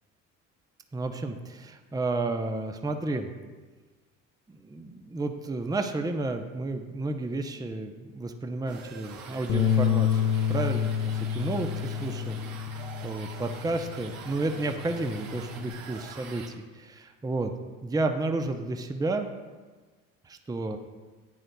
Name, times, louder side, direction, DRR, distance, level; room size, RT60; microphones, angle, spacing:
voice 1, 0.9-3.3 4.5-11.7 12.0-17.5 17.8-19.3 20.2-20.8, right 2 dB, 10° right, 6 dB, 0.7 m, -32 dB
sound 1, 8.7-16.5, right 5 dB, 60° right, 1.2 m, -44 dB
Bass guitar, 9.5-14.0 14.4-15.7, left 8 dB, 45° left, 0.8 m, -29 dB
11.0 x 8.9 x 2.2 m, 1.4 s
hypercardioid pair, 60°, 39 cm